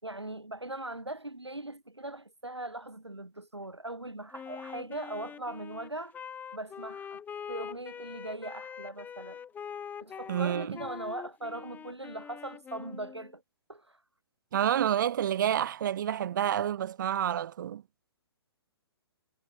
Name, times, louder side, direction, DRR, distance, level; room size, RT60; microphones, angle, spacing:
voice 1, 0.0-6.2 6.5-7.2 7.5-9.4 10.0-13.4 13.7-14.0, right 1 dB, 85° right, 5.5 m, -40 dB
Wind instrument woodwind instrument, 4.3-13.3, left 7 dB, 10° left, 2.8 m, -44 dB
voice 2, 10.3-10.8 14.5-17.8, right 10 dB, 45° right, 0.4 m, -29 dB
figure-of-eight pair, 125°, 14 cm